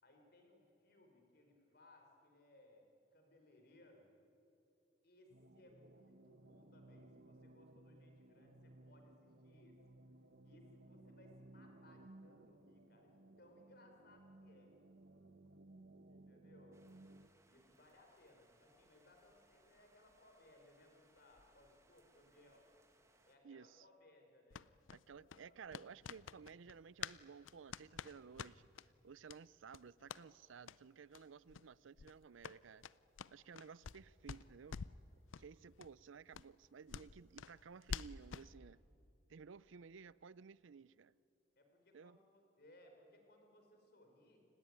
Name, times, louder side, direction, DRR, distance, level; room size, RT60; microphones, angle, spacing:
voice 1, 0.0-4.1 5.0-9.8 10.4-14.7 16.1-16.8 17.5-22.6 23.2-24.7 25.2-25.6 35.3-35.7 41.6-44.5, left 1 dB, 55° left, 4.5 m, -66 dB
sound 1, 5.3-17.3, right 2 dB, 55° right, 1.0 m, -61 dB
sound 2, 16.7-23.4, right 2 dB, 15° right, 1.8 m, -73 dB
voice 2, 23.4-23.9 24.9-28.7 29.0-32.8 33.3-34.8 35.4-38.8 39.3-41.1 41.9-42.2, right 6 dB, 80° right, 0.5 m, -56 dB
sound 3, 24.5-27.2 27.4-28.9 29.3-29.4 29.7-30.2 30.6-30.8 31.1-31.2 31.5-31.7 32.0-34.0 34.3-35.0 35.3-35.5 35.8-35.9 36.3-38.5, left 6 dB, 85° left, 0.5 m, -48 dB
29.0 x 17.5 x 9.7 m
head